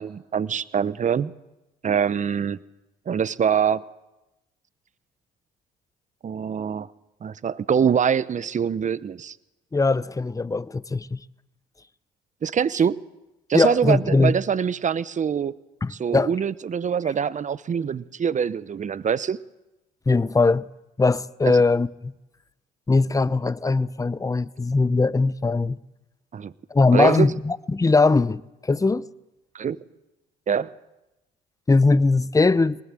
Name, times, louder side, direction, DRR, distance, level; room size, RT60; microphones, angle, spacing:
voice 1, 0.0-1.3 1.8-2.6 3.1-3.8 6.2-6.9 7.2-9.4 12.4-13.0 13.5-15.5 15.9-19.4 26.3-26.5 26.9-27.3 29.5-29.8 30.5-30.7, right 7 dB, 35° right, 0.9 m, -24 dB
voice 2, 9.7-11.2 13.5-14.3 15.8-16.3 20.1-20.7 21.0-22.1 22.9-25.8 26.7-29.0 31.7-32.8, left 3 dB, 15° left, 0.7 m, -20 dB
23.5 x 19.5 x 7.6 m
supercardioid pair, 65°, 21 cm